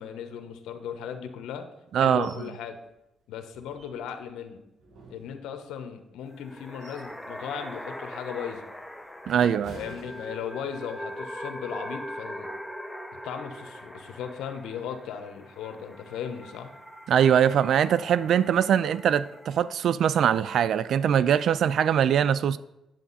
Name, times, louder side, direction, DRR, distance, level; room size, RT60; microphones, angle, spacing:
voice 1, 0.0-1.7 2.0-2.8 3.3-4.6 5.1-8.7 9.3-12.5 13.2-16.7, left 8 dB, 85° left, 1.1 m, -37 dB
voice 2, 1.9-2.3 9.3-9.8 17.1-22.6, right 9 dB, 70° right, 0.3 m, -22 dB
sound 1, 2.2-2.5 2.9-3.0 3.5-4.3 4.8-5.8 6.4-7.2 7.6-7.8 8.4-10.8 11.2-11.4, right 2 dB, 85° right, 3.7 m, -50 dB
sound 2, 6.3-19.7, equal, ahead, 0.8 m, -41 dB
9.2 x 8.4 x 4.1 m
cardioid pair, 90°, 0 cm